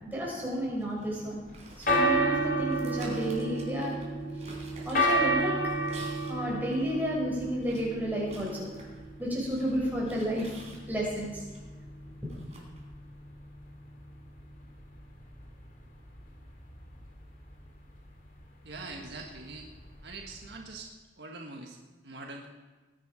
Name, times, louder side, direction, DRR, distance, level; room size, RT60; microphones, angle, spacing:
voice 1, 0.0-1.4 1.8-4.0 4.8-5.5 6.2-8.7 9.2-10.6 10.9-11.4, equal, 10° right, -5 dB, 6.2 m, -31 dB
sound 1, 0.8-2.3 2.7-6.4 6.7-6.8 7.6-11.6 12.3-12.8, right 2 dB, 40° right, 4.0 m, -50 dB
sound 2, 1.5-20.6, right 1 dB, 50° left, 2.5 m, -33 dB
voice 2, 18.6-19.7 20.0-22.5, right 3 dB, 70° right, 1 dB, 1.6 m, -43 dB
20.0 x 10.5 x 5.0 m, 1.2 s
head